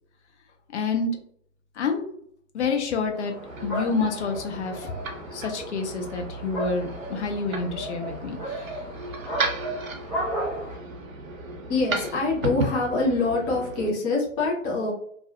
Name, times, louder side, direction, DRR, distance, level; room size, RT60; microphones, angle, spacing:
voice 1, 0.7-1.1 1.8-2.0 2.5-3.3 3.6-4.9 5.3-8.7, left 4 dB, 60° left, 3 dB, 0.6 m, -28 dB
sound 1, 3.1-10.8, right 1 dB, ahead, 0.9 m, -35 dB
sound 2, 3.3-13.9, right 2 dB, 85° right, 0.5 m, -35 dB
voice 2, 11.7-14.9, left 3 dB, 20° left, -2 dB, 0.5 m, -25 dB
2.4 x 2.0 x 2.6 m, 0.64 s
figure-of-eight pair, 110°, 39 cm